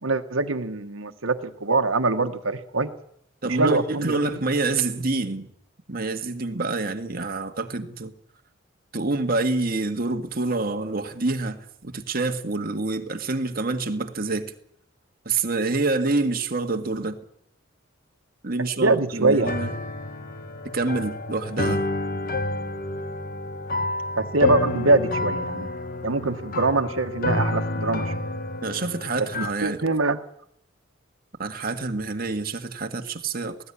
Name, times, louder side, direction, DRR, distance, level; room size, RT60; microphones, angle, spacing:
voice 1, 0.0-2.9 3.4-4.4 18.8-19.5 24.2-25.7 26.0-28.1 29.3-30.2, right 3 dB, 90° right, 1.4 m, -23 dB
voice 2, 3.4-5.5 5.9-8.1 8.9-14.5 15.2-17.2 18.4-19.7 20.6-21.8 28.6-29.8 31.4-33.6, right 3 dB, 45° right, 1.8 m, -27 dB
sound 1, 19.4-29.5, left 2 dB, 45° left, 1.2 m, -29 dB
19.5 x 15.5 x 9.9 m
head